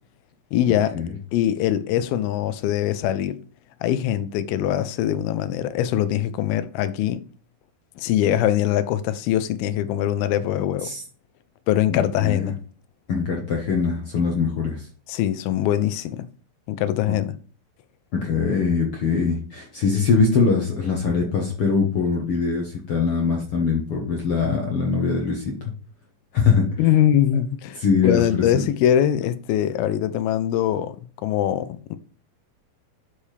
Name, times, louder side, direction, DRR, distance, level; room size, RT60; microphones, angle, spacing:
voice 1, 0.5-1.0 1.3-3.4 3.8-7.2 8.0-10.9 11.7-12.6 15.1-16.3 16.7-17.4 26.8-27.8 28.0-31.0 31.2-32.0, left 11 dB, 90° left, 2.6 m, -22 dB
voice 2, 11.9-12.5 13.1-14.9 17.1-17.2 18.1-25.7 26.3-26.7 27.8-28.6, left 5 dB, 60° left, 1.5 m, -22 dB
10.0 x 6.9 x 3.3 m
omnidirectional pair, 4.2 m